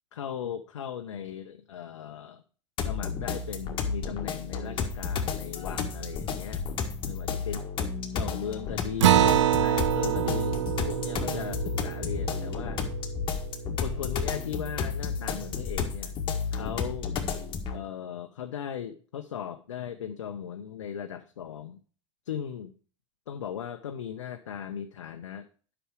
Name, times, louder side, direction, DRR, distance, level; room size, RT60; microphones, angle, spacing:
voice 1, 0.1-2.4 2.8-6.6 7.0-7.6 8.1-10.6 10.9-12.8 13.8-16.2 16.5-17.1 17.7-21.8 22.3-22.7 23.3-25.5, left 8 dB, 70° left, 6 dB, 0.7 m, -37 dB
sound 1, 2.8-17.8, left 5 dB, 30° left, 1.7 m, -32 dB
Acoustic guitar, 9.0-13.9, right 12 dB, 70° right, 0.4 m, -26 dB
11.0 x 6.1 x 4.8 m, 0.41 s
figure-of-eight pair, 85°, 16 cm